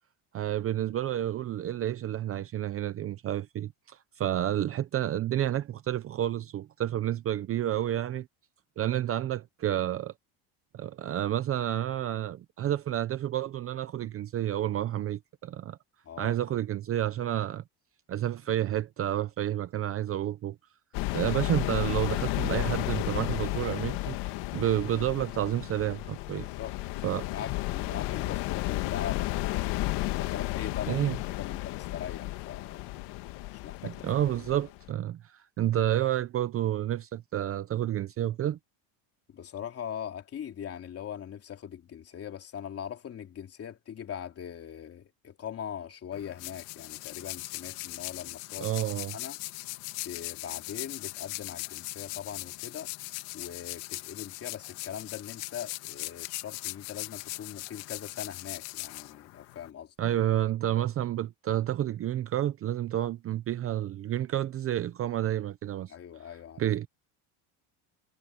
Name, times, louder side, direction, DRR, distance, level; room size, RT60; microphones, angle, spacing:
voice 1, 0.3-8.3 8.8-10.1 10.7-15.8 16.2-17.6 18.1-20.6 21.1-24.2 24.5-26.5 27.0-27.3 30.9-31.2 33.8-38.6 48.6-49.1 60.0-65.9 66.6-66.9, right 12 dB, 30° right, 0.7 m, -30 dB
voice 2, 16.0-16.3 26.3-32.8 33.6-34.0 34.3-34.4 39.3-48.7 49.1-49.4 50.0-52.9 53.3-59.9 65.9-66.7, left 9 dB, 30° left, 3.0 m, -41 dB
sound 1, 20.9-34.9, left 19 dB, 60° left, 1.6 m, -33 dB
sound 2, 46.1-59.7, left 22 dB, 85° left, 1.9 m, -40 dB
cardioid pair, 150°, 46 cm